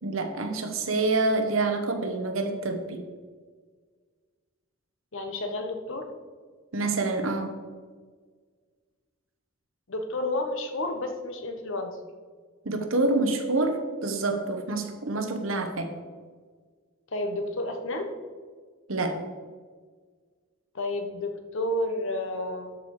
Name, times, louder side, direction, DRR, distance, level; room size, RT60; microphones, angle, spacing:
voice 1, 0.0-3.0 6.7-7.5 12.6-15.9 18.9-19.2, right 2 dB, 70° right, 5 dB, 1.2 m, -27 dB
voice 2, 5.1-6.1 9.9-12.0 17.1-18.1 20.7-22.8, left 1 dB, 65° left, 5 dB, 1.2 m, -31 dB
12.5 x 4.9 x 4.9 m, 1.5 s
head